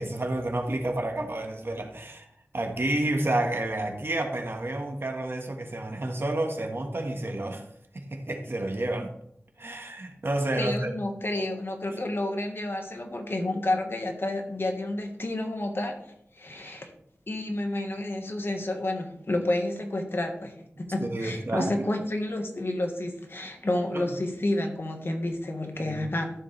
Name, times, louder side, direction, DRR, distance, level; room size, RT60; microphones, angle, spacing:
voice 1, 0.0-2.3 2.5-7.6 7.9-9.1 9.6-10.9 20.8-21.9 23.9-24.1 25.8-26.0, right 1 dB, 55° right, 3 dB, 1.5 m, -30 dB
voice 2, 10.6-15.9 16.4-16.9 17.3-26.3, left 1 dB, 50° left, 4 dB, 1.5 m, -30 dB
13.0 x 7.2 x 3.3 m, 0.74 s
wide cardioid pair, 70°, 5 cm